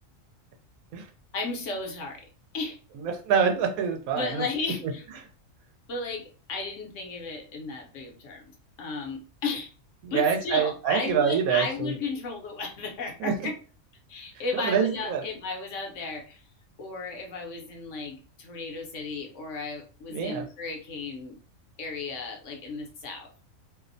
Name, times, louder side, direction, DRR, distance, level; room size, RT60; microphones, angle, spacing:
voice 1, 1.3-2.2 2.5-2.8 4.1-5.0 5.9-8.4 8.8-9.7 10.1-13.5 14.1-16.4 16.8-21.4 21.8-23.3, left 4 dB, 65° left, 2 dB, 0.9 m, -34 dB
voice 2, 3.0-4.4 10.0-11.9 13.2-13.3 14.6-15.2 20.1-20.4, right 7 dB, 85° right, 4 dB, 1.0 m, -26 dB
2.7 x 2.0 x 2.5 m, 0.38 s
omnidirectional pair, 1.4 m